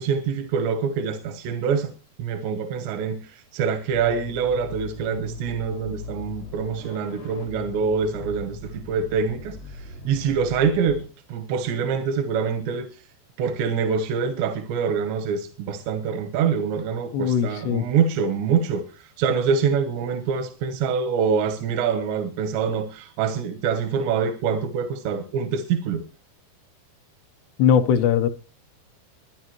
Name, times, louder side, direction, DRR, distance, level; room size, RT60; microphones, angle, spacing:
voice 1, 0.0-1.9 2.2-12.9 13.4-26.0, right 6 dB, 85° right, 3.3 m, -25 dB
sound 1, 3.9-11.0, left 3 dB, 50° left, 1.1 m, -39 dB
voice 2, 17.1-17.9 27.6-28.3, left 8 dB, 80° left, 3.1 m, -20 dB
23.5 x 10.0 x 3.1 m
omnidirectional pair, 4.9 m